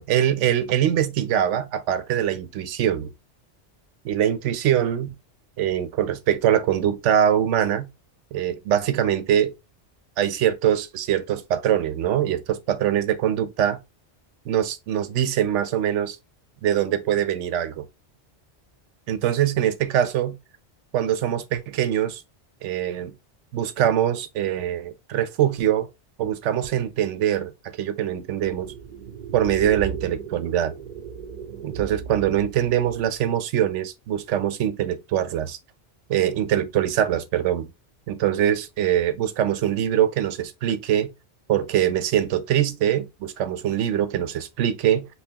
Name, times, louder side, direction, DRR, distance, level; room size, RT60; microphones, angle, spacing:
voice 1, 0.0-3.1 4.0-5.1 5.6-7.9 8.3-9.5 10.2-13.8 14.5-16.2 16.6-17.9 19.1-20.4 20.9-22.2 22.6-23.1 23.5-25.9 26.2-28.7 29.3-30.7 31.6-35.6 36.1-37.7 38.1-41.1 41.5-45.1, right 10 dB, 85° right, 0.9 m, -23 dB
sound 1, 28.4-33.2, right 6 dB, 50° right, 0.7 m, -37 dB
5.5 x 2.2 x 2.7 m
omnidirectional pair, 1.2 m